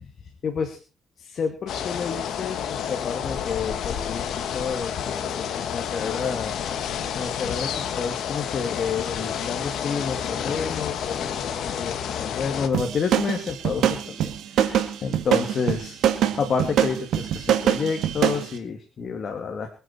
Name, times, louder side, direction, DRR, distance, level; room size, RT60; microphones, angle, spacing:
voice 1, 0.4-0.8 1.2-6.5 7.2-14.3 14.6-16.0 16.4-19.7, left 5 dB, 50° left, 4 dB, 2.6 m, -30 dB
sound 1, 1.7-12.7, left 8 dB, 75° left, 2.0 m, -30 dB
sound 2, 12.7-18.5, right 10 dB, 75° right, 2.1 m, -23 dB
24.0 x 9.5 x 4.4 m, 0.35 s
cardioid pair, 90°, 0 cm